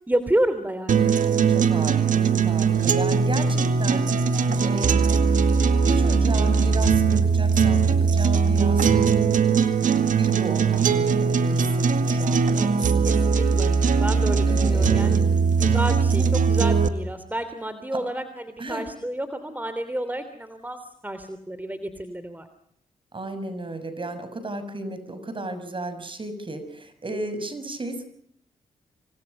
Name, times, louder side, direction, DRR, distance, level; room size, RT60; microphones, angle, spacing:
voice 1, 0.1-1.1 13.0-13.7 14.0-15.2 15.6-16.2 16.5-22.5, right 1 dB, 10° right, 10 dB, 3.2 m, -30 dB
sound 1, 0.9-16.9, right 5 dB, 70° right, 2.1 m, -20 dB
voice 2, 1.5-4.1 4.6-5.2 5.8-9.1 10.1-13.1 14.5-15.3 16.1-16.3 17.9-18.0 18.6-18.9 23.1-28.0, right 2 dB, 40° right, 11 dB, 6.7 m, -34 dB
29.0 x 25.0 x 5.5 m, 0.68 s
supercardioid pair, 50°, 14 cm